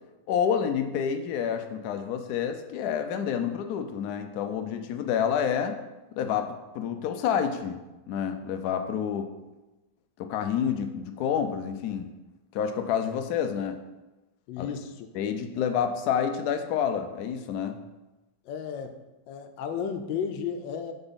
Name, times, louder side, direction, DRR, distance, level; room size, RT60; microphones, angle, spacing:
voice 1, 0.3-5.8 6.1-6.5 6.7-7.8 8.1-9.3 10.2-12.1 12.5-13.8 14.6-14.7 15.1-17.7, left 8 dB, 70° left, 6 dB, 1.0 m, -28 dB
voice 2, 14.5-15.1 18.4-19.0 19.3-20.9, left 7 dB, 85° left, 7 dB, 1.4 m, -33 dB
9.2 x 4.0 x 4.0 m, 1.1 s
omnidirectional pair, 2.0 m